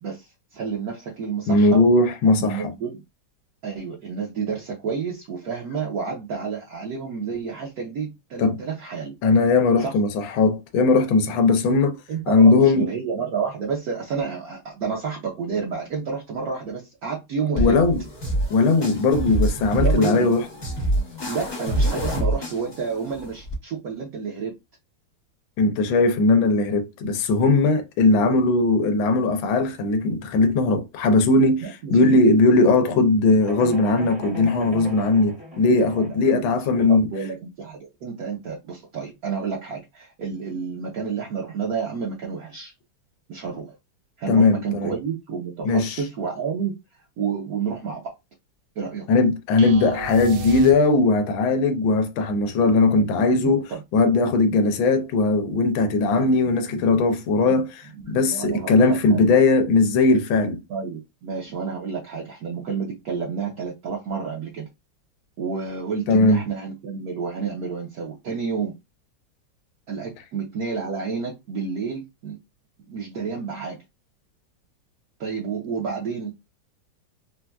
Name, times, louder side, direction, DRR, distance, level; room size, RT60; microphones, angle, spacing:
voice 1, 0.0-1.8 2.2-3.0 3.6-9.2 9.8-9.9 12.1-17.8 19.7-20.3 21.3-24.5 31.6-31.9 35.7-36.4 36.8-42.7 43.3-43.7 44.2-46.7 47.2-48.1 48.8-49.1 52.9-53.0 53.3-53.8 54.5-54.6 56.1-57.0 57.5-57.6 58.0-59.2 60.7-64.7 65.4-68.7 69.9-72.4 72.9-73.8 75.2-76.3, right 5 dB, 60° right, 1.0 m, -30 dB
voice 2, 1.5-2.7 8.4-8.6 9.2-12.0 12.3-12.9 17.6-18.0 18.5-20.4 25.6-31.6 31.9-37.1 44.3-44.9 45.6-46.0 49.1-53.7 53.9-57.8 58.1-60.6 66.1-66.4, left 3 dB, 80° left, 1.4 m, -19 dB
sound 1, 17.5-23.5, right 1 dB, 45° left, 0.3 m, -26 dB
sound 2, 33.4-36.3, right 1 dB, 25° right, 0.7 m, -38 dB
sound 3, 49.6-51.3, right 5 dB, 85° right, 0.8 m, -34 dB
4.0 x 2.3 x 2.2 m
omnidirectional pair, 2.2 m